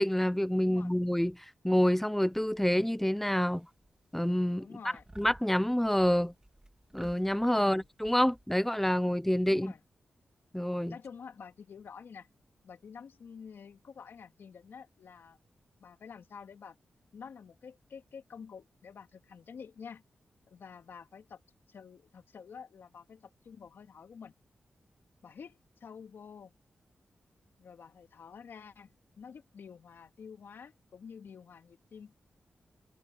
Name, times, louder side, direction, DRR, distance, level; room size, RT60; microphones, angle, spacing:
voice 1, 0.0-3.7 4.1-4.7 5.2-6.3 6.9-9.7 10.5-10.9, equal, 5° left, 0.7 m, -27 dB
voice 2, 0.6-0.9 4.6-5.0 7.5-7.9 9.5-9.8 10.9-12.3 12.6-15.4 15.8-16.8 17.1-20.0 20.5-21.4 21.7-24.3 25.2-26.5 27.6-28.9 29.2-32.1, left 6 dB, 75° left, 3.1 m, -49 dB
sound 1, 2.3-3.0 3.4-4.0 4.3-4.6 5.0-8.5, right 1 dB, 15° right, 3.5 m, -55 dB
cardioid pair, 55°, 4 cm